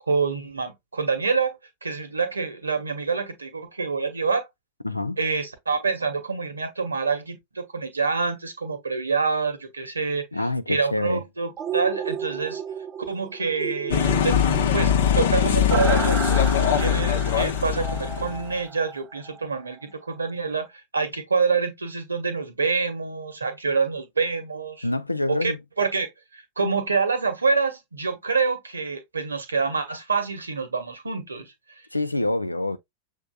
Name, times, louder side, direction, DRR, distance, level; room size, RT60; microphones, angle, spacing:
voice 1, 0.1-4.4 5.2-12.6 13.1-14.4 14.7-20.7 20.9-24.9 25.3-31.5, right 4 dB, 75° right, 1.0 m, -27 dB
voice 2, 4.8-5.2 10.3-11.2 24.8-25.6 31.9-32.8, left 2 dB, 85° left, 0.4 m, -26 dB
sound 1, 11.6-19.5 19.8-19.9, right 8 dB, 30° right, 0.4 m, -34 dB
sound 2, 13.9-18.5, left 8 dB, 60° left, 0.7 m, -21 dB
6.7 x 3.3 x 2.2 m
figure-of-eight pair, 90°, 0 cm